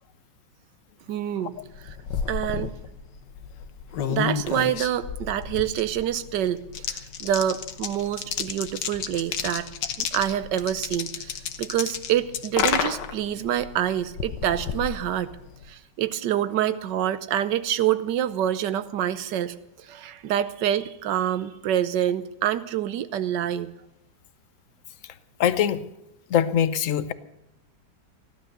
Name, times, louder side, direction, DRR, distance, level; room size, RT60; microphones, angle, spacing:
voice 1, 1.1-1.5 1.8-2.0 2.3-2.7 4.1-9.7 10.0-15.3 15.7-19.5 19.8-23.7, right 11 dB, 75° right, 14 dB, 1.4 m, -26 dB
sound 1, 1.6-15.7, left 7 dB, 75° left, 1.6 m, -32 dB
voice 2, 25.4-25.8 26.3-27.1, left 9 dB, 55° left, 13 dB, 1.0 m, -22 dB
16.0 x 12.0 x 6.7 m, 0.85 s
omnidirectional pair, 1.9 m